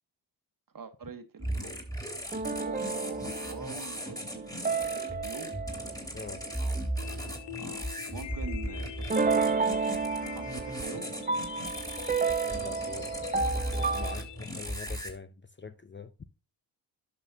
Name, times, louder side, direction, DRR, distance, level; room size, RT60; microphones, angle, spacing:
voice 1, 0.7-1.8 2.6-5.6 7.6-9.9 10.3-11.1, right 5 dB, 45° right, 1.4 m, -44 dB
sound 1, 1.4-15.1, right 1 dB, 10° left, 3.1 m, -37 dB
sound 2, 2.3-6.8 9.1-14.2, right 4 dB, 20° right, 0.6 m, -31 dB
voice 2, 6.1-6.4 12.4-13.1 13.5-16.1, left 4 dB, 25° left, 0.7 m, -44 dB
sound 3, 7.0-15.0, left 12 dB, 65° left, 0.7 m, -45 dB
11.5 x 6.1 x 2.7 m
supercardioid pair, 55°, 46 cm